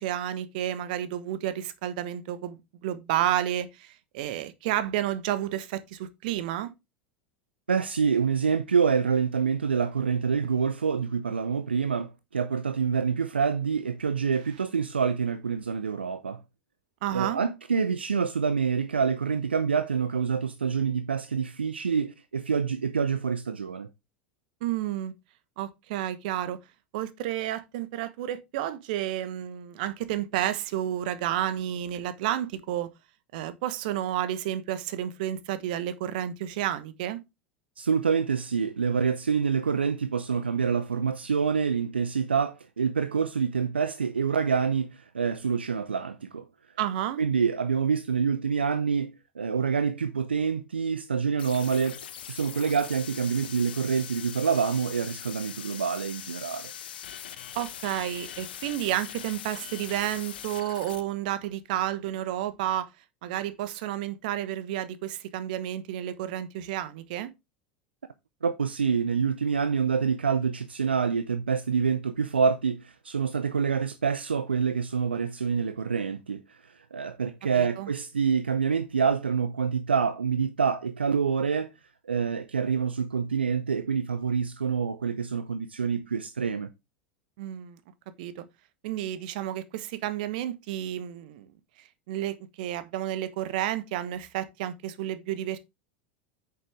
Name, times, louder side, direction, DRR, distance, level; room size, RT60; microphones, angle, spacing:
voice 1, 0.0-6.7 17.0-17.4 24.6-25.1 25.6-26.6 26.9-32.9 33.3-37.2 46.8-47.2 57.5-62.9 63.2-67.3 77.6-77.9 87.4-87.8 88.2-88.4 88.8-91.5 92.1-95.6, right 12 dB, 55° right, 1.2 m, -31 dB
voice 2, 7.7-16.4 17.1-23.9 37.8-46.5 47.2-52.0 52.3-56.7 68.4-81.7 82.1-86.7, right 6 dB, 75° right, 0.6 m, -27 dB
sound 1, 51.4-61.0, left 10 dB, 65° left, 1.1 m, -41 dB
8.9 x 6.9 x 3.4 m
figure-of-eight pair, 80°, 6 cm